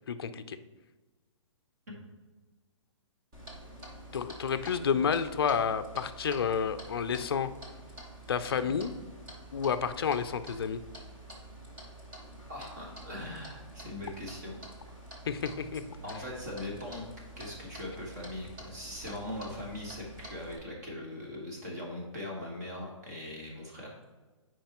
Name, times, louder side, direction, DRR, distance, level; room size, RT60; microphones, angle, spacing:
voice 1, 0.1-0.6 4.1-7.5 8.3-8.9 9.5-10.8 15.3-15.8, left 6 dB, 50° left, 10 dB, 0.4 m, -30 dB
Clock, 3.3-20.6, right 1 dB, 10° right, 0.6 m, -48 dB
voice 2, 12.5-14.5 14.9-15.1 16.0-17.1 17.4-24.0, left 1 dB, 30° right, -1 dB, 1.6 m, -40 dB
8.9 x 4.7 x 2.9 m, 1.3 s
hypercardioid pair, 180°, 17 cm